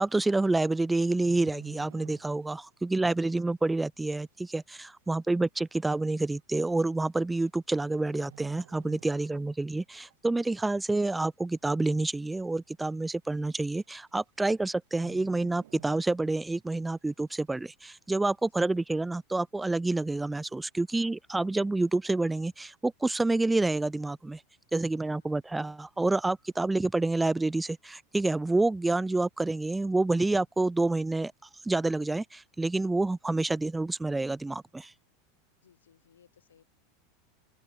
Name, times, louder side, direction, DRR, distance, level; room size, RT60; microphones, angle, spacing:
voice 1, 0.0-24.4 24.7-31.3 31.6-34.9, right 2 dB, 10° right, 0.3 m, -28 dB
sound 1, 1.0-2.7 2.9-3.2 3.8-3.9 4.8-4.9 5.1-5.2 6.0-6.2 7.3-7.7 8.0-9.6 9.9-10.2 10.6-11.2 11.5-11.6 11.8-11.9 12.4-12.5 13.4-13.5 13.8-14.1 14.4-14.5 14.9-16.5 16.9-17.0, right 14 dB, 75° right, 2.1 m, -53 dB
voice 2, 24.9-25.4 35.6-36.6, left 8 dB, 90° left, 2.6 m, -63 dB
open air
hypercardioid pair, 95°, 0 cm